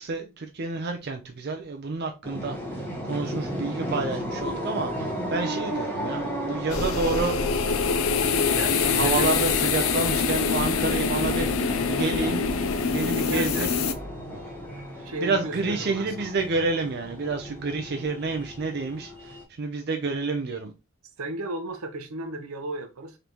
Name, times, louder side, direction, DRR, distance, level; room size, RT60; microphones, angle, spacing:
voice 1, 0.0-7.4 7.9-8.0 8.3-12.4 12.9-13.8 15.2-20.7, right 3 dB, 50° right, 0.5 m, -29 dB
sound 1, 2.2-19.4, equal, 10° left, 1.1 m, -34 dB
sound 2, 3.9-12.8, equal, 25° left, 0.7 m, -49 dB
sound 3, 6.7-13.9, left 5 dB, 70° left, 0.4 m, -25 dB
voice 2, 8.5-9.3 13.3-13.7 15.0-16.3 21.2-23.2, right 2 dB, 90° right, 0.8 m, -34 dB
3.8 x 3.4 x 2.9 m
head